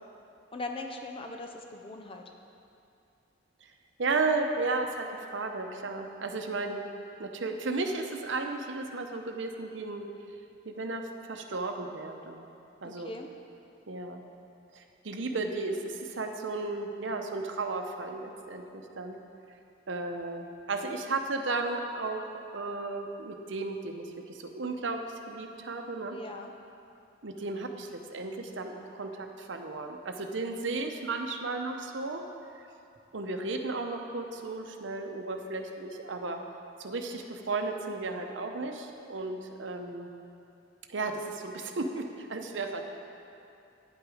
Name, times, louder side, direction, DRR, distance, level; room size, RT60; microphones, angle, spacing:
voice 1, 0.5-2.2 12.8-13.3 26.1-26.5, left 2 dB, 30° left, 4 dB, 0.5 m, -40 dB
voice 2, 4.0-6.8 7.2-10.1 10.6-12.5 12.8-13.1 13.9-14.2 14.7-19.2 19.9-22.2 22.5-26.2 27.2-32.2 33.1-36.4 36.8-40.1 40.9-42.9, right 3 dB, 70° right, 4 dB, 0.8 m, -34 dB
9.4 x 8.0 x 4.9 m, 2.6 s
head